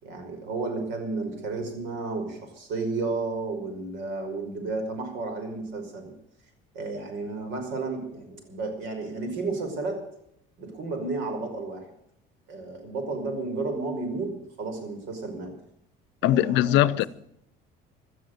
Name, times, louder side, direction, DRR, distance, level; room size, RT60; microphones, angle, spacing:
voice 1, 0.0-6.1 6.7-10.0 10.6-11.9 12.5-15.6 16.2-17.1, right 3 dB, 85° right, 5.4 m, -32 dB
voice 2, 16.2-17.1, left 14 dB, 80° left, 0.7 m, -21 dB
17.0 x 12.5 x 6.7 m
cardioid pair, 150°, 19 cm